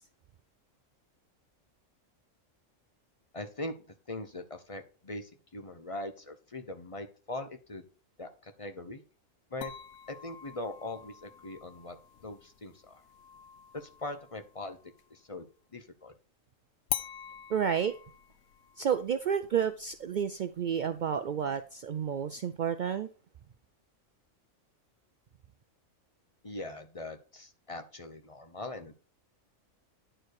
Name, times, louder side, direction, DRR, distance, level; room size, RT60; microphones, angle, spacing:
voice 1, 3.3-3.8 4.1-7.8 8.2-9.0 9.5-9.7 10.1-12.0 12.2-13.0 13.7-14.8 15.1-15.5 15.7-16.1 26.4-28.9, left 2 dB, 30° left, 7 dB, 0.8 m, -41 dB
sound 1, 9.6-15.2 16.9-21.9, left 11 dB, 85° left, 1.0 m, -45 dB
voice 2, 17.5-18.0 18.8-23.1, right 8 dB, 85° right, 11 dB, 0.4 m, -30 dB
10.0 x 4.5 x 4.7 m, 0.37 s
omnidirectional pair, 1.4 m